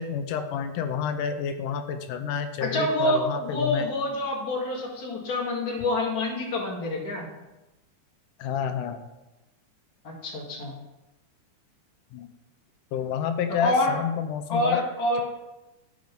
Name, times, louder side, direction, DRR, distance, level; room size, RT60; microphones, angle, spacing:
voice 1, 0.0-3.9 8.4-9.0 12.1-12.3 12.9-14.9, left 7 dB, 85° left, 8 dB, 2.2 m, -29 dB
voice 2, 2.6-7.2 10.0-10.7 13.5-13.9 14.5-15.2, left 1 dB, 35° left, -1 dB, 2.0 m, -27 dB
12.5 x 5.2 x 5.3 m, 1.0 s
omnidirectional pair, 3.6 m